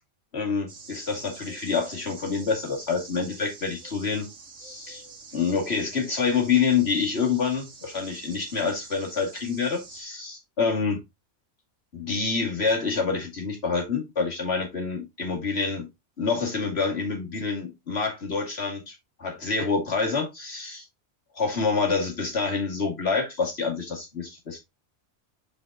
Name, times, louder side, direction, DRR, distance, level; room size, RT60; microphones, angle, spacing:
voice 1, 0.3-4.3 4.6-5.0 5.3-11.0 11.9-15.9 16.2-20.8 21.3-24.6, left 5 dB, 55° left, 2.5 m, -27 dB
sound 1, 0.7-10.0, right 4 dB, 80° right, 1.8 m, -47 dB
5.2 x 5.1 x 3.8 m
omnidirectional pair, 1.3 m